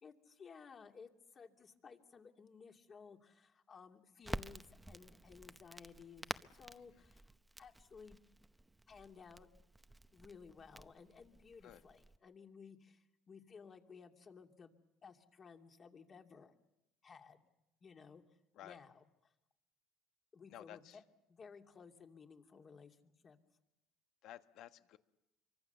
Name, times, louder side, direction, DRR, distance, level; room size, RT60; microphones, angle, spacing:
voice 1, 0.0-7.3 7.6-8.2 8.9-9.5 10.1-16.5 17.0-17.5 17.8-18.2 18.6-19.0 20.3-21.0 21.3-23.4, left 5 dB, 35° left, 4 dB, 2.7 m, -57 dB
Crackle, 4.2-12.2, right 1 dB, 10° right, 0.8 m, -50 dB
voice 2, 20.5-21.0 24.2-25.0, left 12 dB, 70° left, 9 dB, 1.4 m, -53 dB
26.5 x 24.0 x 6.9 m, 0.89 s
supercardioid pair, 100°, 0 cm